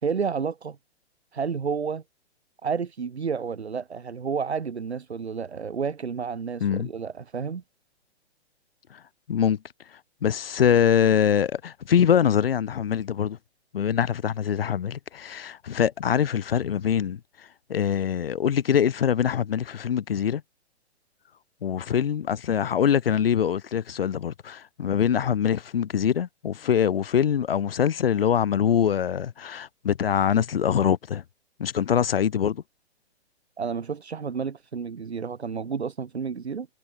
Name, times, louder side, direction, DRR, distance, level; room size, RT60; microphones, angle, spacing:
voice 1, 0.0-0.8 1.3-2.0 2.6-7.6 33.6-36.7, right 6 dB, 70° right, 2.1 m, -30 dB
voice 2, 10.2-13.4 13.7-17.2 17.7-20.4 21.6-31.2 31.6-32.6, left 8 dB, 55° left, 2.5 m, -23 dB
figure-of-eight pair, 125°, 33 cm